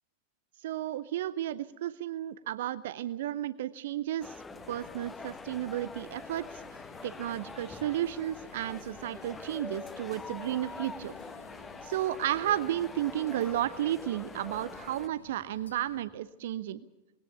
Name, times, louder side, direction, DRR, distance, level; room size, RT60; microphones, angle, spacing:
voice 1, 0.6-4.4 4.7-6.6 7.0-11.1 11.8-16.8, right 12 dB, 55° right, 17 dB, 0.6 m, -33 dB
sound 1, 4.2-15.1, left 4 dB, 15° left, 1.1 m, -45 dB
sound 2, 4.5-16.1, left 3 dB, 75° left, 2.2 m, -54 dB
20.5 x 17.5 x 8.1 m, 1.1 s
figure-of-eight pair, 90°, 0 cm